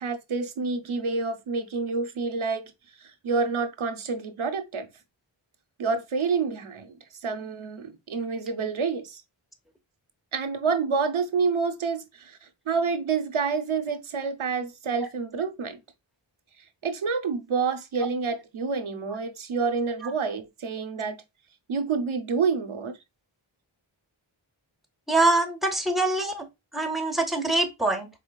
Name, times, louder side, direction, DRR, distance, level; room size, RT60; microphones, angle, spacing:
voice 1, 0.0-2.6 3.0-4.9 5.8-7.0 7.2-9.2 10.3-12.4 12.7-15.8 16.8-21.2 21.7-23.0, right 5 dB, 80° right, 0.7 m, -28 dB
voice 2, 25.1-26.4 26.7-28.1, right 2 dB, ahead, 0.8 m, -24 dB
4.4 x 3.4 x 2.2 m
wide cardioid pair, 40°, 48 cm